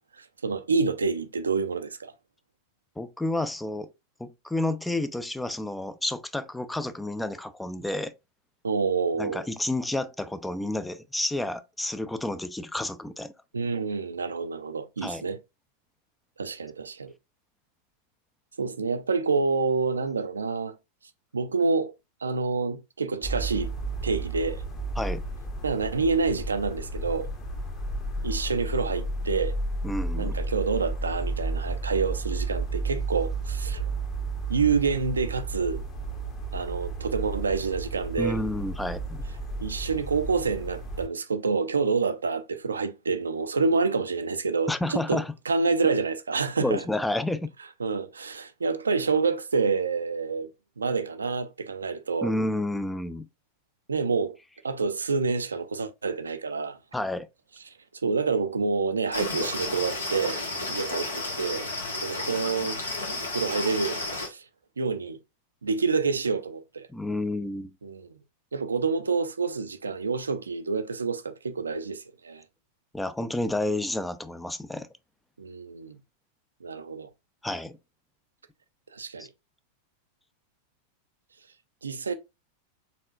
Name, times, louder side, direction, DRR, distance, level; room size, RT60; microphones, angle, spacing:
voice 1, 0.2-2.1 8.6-9.5 13.5-15.4 16.4-17.1 18.6-20.7 21.3-21.9 22.2-23.7 24.0-24.6 25.6-27.3 28.2-29.6 30.2-33.8 34.5-35.8 36.5-38.4 39.6-46.8 47.8-50.5 50.8-52.3 53.9-54.4 54.6-56.8 57.7-57.8 58.0-60.4 60.7-61.7 62.0-62.8 63.3-64.4 64.8-65.2 65.6-66.9 67.8-68.1 68.5-72.4 75.4-76.0 76.6-77.1 78.9-79.3 81.8-82.1, right 4 dB, 75° right, 0.4 m, -28 dB
voice 2, 3.0-3.9 4.2-8.1 9.2-13.3 15.0-15.2 25.0-25.2 29.8-30.4 38.2-39.2 44.7-45.3 46.6-47.5 52.2-53.3 56.9-57.3 66.9-67.7 72.9-74.9 77.4-77.8 79.2-79.3, left 1 dB, 5° left, 0.4 m, -30 dB
sound 1, 23.2-41.1, right 2 dB, 30° left, 1.1 m, -32 dB
sound 2, 59.1-64.3, left 2 dB, 75° left, 1.2 m, -32 dB
4.1 x 3.6 x 2.4 m
figure-of-eight pair, 90°, 0 cm